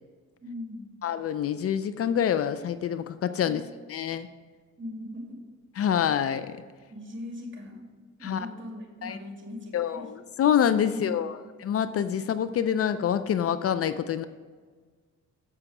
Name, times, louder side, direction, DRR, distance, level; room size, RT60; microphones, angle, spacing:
voice 1, 0.4-0.9 3.4-3.7 4.8-5.4 6.9-7.9 8.2-10.1 10.9-11.4, left 1 dB, 40° right, 1 dB, 2.5 m, -40 dB
voice 2, 1.0-3.6 3.9-4.3 5.8-6.6 8.2-8.5 9.0-9.2 9.7-14.2, left 9 dB, 50° left, 12 dB, 0.5 m, -26 dB
6.9 x 6.8 x 4.8 m, 1.5 s
cardioid pair, 90°, 30 cm